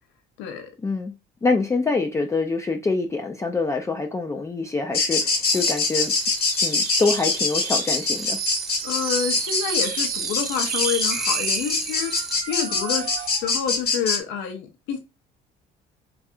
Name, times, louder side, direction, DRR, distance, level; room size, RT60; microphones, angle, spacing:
voice 1, 0.4-0.7 8.8-15.0, left 7 dB, 75° left, 0.6 m, -29 dB
voice 2, 1.4-6.1 6.6-8.4, left 3 dB, 15° left, 0.3 m, -25 dB
sound 1, 4.9-14.2, left 4 dB, 55° left, 1.2 m, -23 dB
sound 2, 5.4-12.4, right 1 dB, ahead, 0.7 m, -35 dB
sound 3, 5.5-13.5, right 8 dB, 50° right, 0.4 m, -33 dB
2.7 x 2.4 x 2.3 m
supercardioid pair, 75°, 19 cm